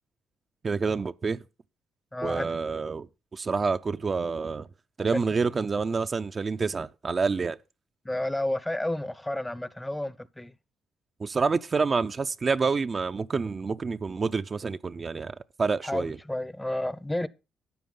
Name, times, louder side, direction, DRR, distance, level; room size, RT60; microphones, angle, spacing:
voice 1, 0.6-1.4 2.2-3.1 3.3-4.7 5.0-7.6 11.2-16.2, right 4 dB, 35° right, 0.5 m, -28 dB
voice 2, 2.1-2.5 5.1-5.5 8.0-10.5 15.8-17.3, left 1 dB, 10° left, 0.7 m, -31 dB
12.5 x 8.5 x 3.8 m
cardioid pair, 90°, 0 cm